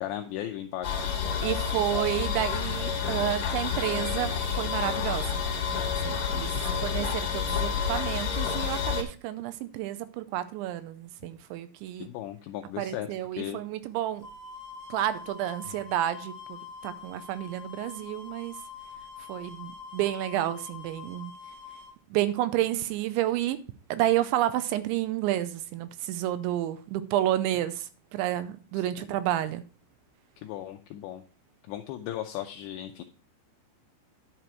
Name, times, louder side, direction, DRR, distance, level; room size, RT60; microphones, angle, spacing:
voice 1, 0.0-1.1 12.0-13.1 13.3-13.6 15.7-15.8 29.0-29.1 30.4-31.2 31.7-33.0, left 12 dB, 90° left, 2.5 m, -36 dB
sound 1, 0.8-9.0, left 6 dB, 60° left, 2.4 m, -29 dB
voice 2, 1.4-5.4 6.0-6.5 6.8-12.1 12.8-14.2 14.9-16.6 16.8-18.5 19.3-21.3 22.1-23.6 23.9-29.6, right 13 dB, 80° right, 2.7 m, -30 dB
sound 2, 14.2-21.9, left 6 dB, 20° right, 3.6 m, -45 dB
10.5 x 6.0 x 4.5 m
omnidirectional pair, 5.8 m